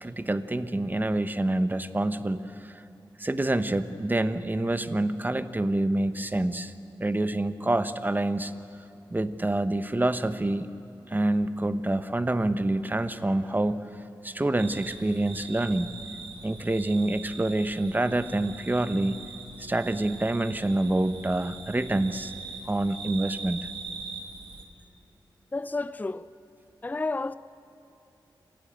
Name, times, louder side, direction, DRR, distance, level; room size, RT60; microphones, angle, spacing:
voice 1, 0.0-2.8 3.2-6.7 7.0-8.5 9.1-10.7 11.1-13.9 14.2-15.9 16.4-19.2 19.6-22.3 22.7-23.7, right 1 dB, 20° right, 1.0 m, -27 dB
sound 1, 14.6-24.6, right 5 dB, 75° right, 2.1 m, -42 dB
voice 2, 25.5-26.3 26.8-27.3, left 3 dB, 20° left, 0.5 m, -30 dB
26.5 x 15.5 x 9.0 m
cardioid pair, 65°, 9 cm